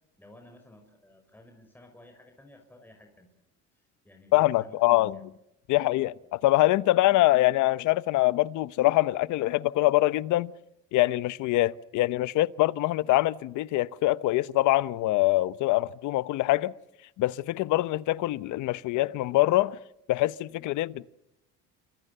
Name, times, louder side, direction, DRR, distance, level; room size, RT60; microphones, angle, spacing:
voice 1, 0.2-3.3 3.7-5.2 6.2-6.3, left 1 dB, 5° left, 5.6 m, -54 dB
voice 2, 4.3-5.2 5.7-10.5 10.9-16.7 17.2-19.8 20.1-21.2, left 17 dB, 70° left, 1.0 m, -24 dB
28.5 x 26.0 x 6.8 m
cardioid pair, 115°, 31 cm